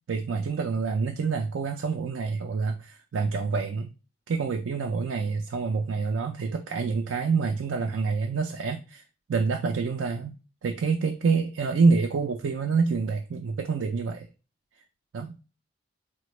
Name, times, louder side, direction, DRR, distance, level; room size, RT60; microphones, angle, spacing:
voice 1, 0.1-3.9 4.3-9.0 9.3-10.3 10.6-14.3 15.1-15.3, right 4 dB, 90° right, 4 dB, 0.4 m, -27 dB
3.9 x 2.2 x 3.0 m, 0.32 s
head